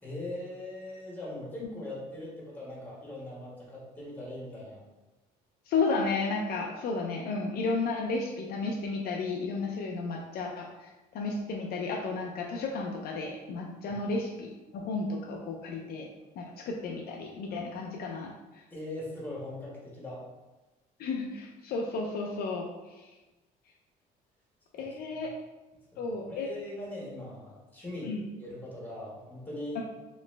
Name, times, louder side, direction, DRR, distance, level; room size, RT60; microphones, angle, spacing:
voice 1, 0.0-4.8 13.9-14.0 18.7-20.2 25.9-29.8, left 1 dB, 10° left, -5 dB, 1.4 m, -40 dB
voice 2, 5.7-10.9 11.1-16.1 16.4-18.3 21.0-23.1 24.7-25.3 26.0-26.5 28.0-28.2 29.7-29.8, left 3 dB, 65° left, 1 dB, 0.5 m, -33 dB
3.0 x 2.9 x 3.2 m, 1.1 s
cardioid pair, 110°, 17 cm